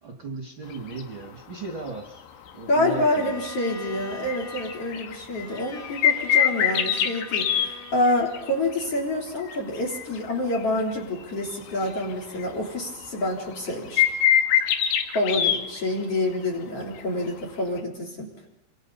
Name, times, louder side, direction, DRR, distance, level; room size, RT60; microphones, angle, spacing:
voice 1, 0.0-2.2 2.5-3.4, right 4 dB, 40° right, 1 dB, 2.0 m, -36 dB
sound 1, 0.7-1.0 1.9-2.0 2.5-2.8 3.1-3.2 3.4-3.7 4.1-7.7 8.1-8.9 9.4-10.8 11.2-11.3 11.5-12.7 13.2-13.3 13.5-15.6 17.0-17.1 17.8-17.9, left 9 dB, 90° left, 3.6 m, -24 dB
Bowed string instrument, 2.7-8.9, left 3 dB, 55° left, 3.5 m, -43 dB
voice 2, 2.7-14.0 15.1-18.5, left 1 dB, 35° left, -2 dB, 4.4 m, -27 dB
26.5 x 26.0 x 4.1 m, 0.93 s
omnidirectional pair, 4.7 m